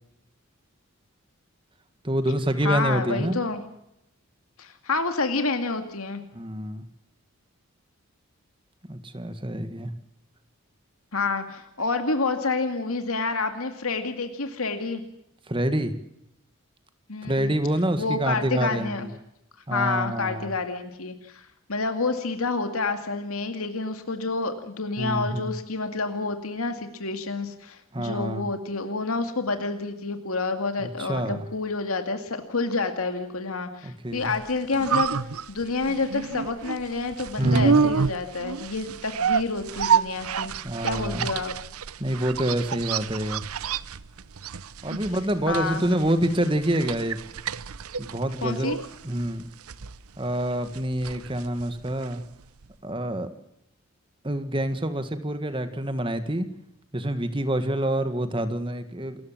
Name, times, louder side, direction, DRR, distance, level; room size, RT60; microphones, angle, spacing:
voice 1, 2.0-3.4 6.3-6.8 8.9-9.9 15.5-15.9 17.2-19.1 19.7-20.5 25.0-25.5 27.9-28.5 30.8-31.5 33.8-34.3 37.4-37.9 40.6-41.3 42.0-43.4 44.8-47.2 48.0-48.7 49.0-49.5 50.2-52.2 52.8-53.3 54.2-56.5 56.9-59.3, right 1 dB, 25° right, 9 dB, 1.8 m, -27 dB
voice 2, 2.6-3.6 4.6-6.2 11.1-15.0 17.1-17.5 18.0-19.1 19.7-35.2 35.5-40.5 40.8-41.5 45.5-45.8 48.4-48.8, left 3 dB, 80° left, 7 dB, 2.3 m, -28 dB
sound 1, 34.3-52.3 52.6-52.7, right 6 dB, 85° right, 0.7 m, -29 dB
28.5 x 14.5 x 7.4 m, 0.82 s
head